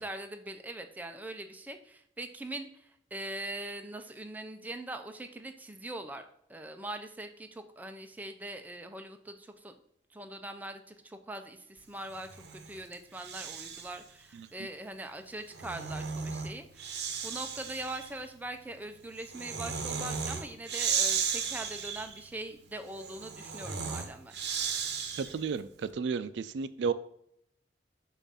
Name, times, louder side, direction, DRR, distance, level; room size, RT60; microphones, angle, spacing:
voice 1, 0.0-9.7 10.1-24.4, right 1 dB, 10° right, 6 dB, 0.4 m, -42 dB
Breathing, 12.1-14.0 15.3-25.5, right 6 dB, 65° right, 0.7 m, -36 dB
voice 2, 25.2-26.9, right 5 dB, 85° right, 14 dB, 0.3 m, -32 dB
7.0 x 2.5 x 5.5 m, 0.72 s
head